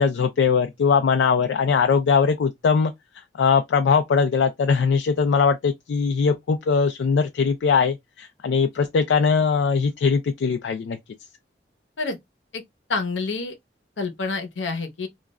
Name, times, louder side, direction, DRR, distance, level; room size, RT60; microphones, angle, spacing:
voice 1, 0.0-2.9 3.4-11.0, left 5 dB, 75° left, 0.3 m, -21 dB
voice 2, 12.9-13.5 14.0-15.1, left 3 dB, 90° left, 0.7 m, -27 dB
2.3 x 2.0 x 3.4 m
head